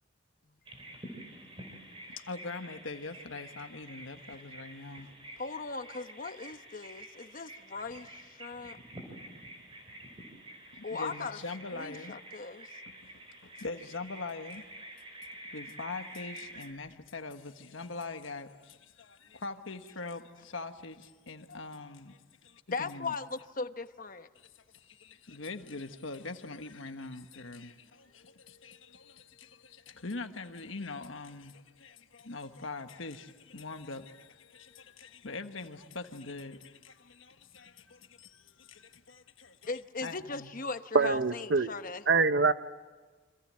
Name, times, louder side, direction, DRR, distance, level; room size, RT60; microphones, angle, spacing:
Bird vocalization bird call bird song, 0.7-16.7, right 1 dB, 25° right, 5.0 m, -48 dB
voice 1, 2.1-5.1 10.7-12.2 12.9-14.6 15.5-23.2 24.3-39.7 40.0-40.5, left 3 dB, 75° left, 1.4 m, -43 dB
voice 2, 5.4-8.8 10.8-11.4 11.7-12.7 22.7-24.3 39.7-42.0, left 4 dB, 45° left, 1.0 m, -38 dB
voice 3, 40.9-41.7 42.1-42.5, right 4 dB, 60° right, 0.9 m, -24 dB
29.0 x 26.0 x 7.6 m
head